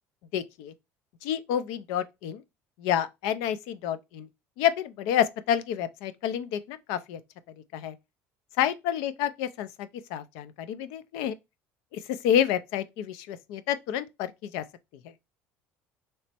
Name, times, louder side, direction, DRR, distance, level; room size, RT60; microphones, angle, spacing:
voice 1, 0.3-0.7 1.2-2.4 2.8-4.3 4.6-7.2 7.7-8.0 8.6-11.4 11.9-14.6, left 10 dB, 80° left, 0.4 m, -29 dB
3.2 x 3.0 x 4.2 m
cardioid pair, 155°, 5 cm